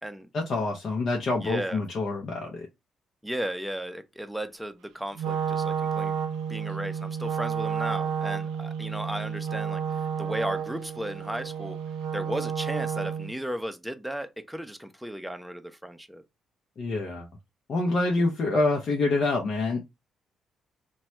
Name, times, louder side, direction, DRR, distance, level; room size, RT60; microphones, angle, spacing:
voice 1, 0.3-2.7 16.8-17.3 17.7-19.8, left 2 dB, 55° left, 0.6 m, -26 dB
voice 2, 1.4-1.8 3.2-6.2 6.5-11.8 12.1-16.2, right 1 dB, 5° right, 0.6 m, -35 dB
Wind instrument woodwind instrument, 5.2-13.4, right 7 dB, 75° right, 0.4 m, -31 dB
3.0 x 2.2 x 2.8 m
hypercardioid pair, 45°, 0 cm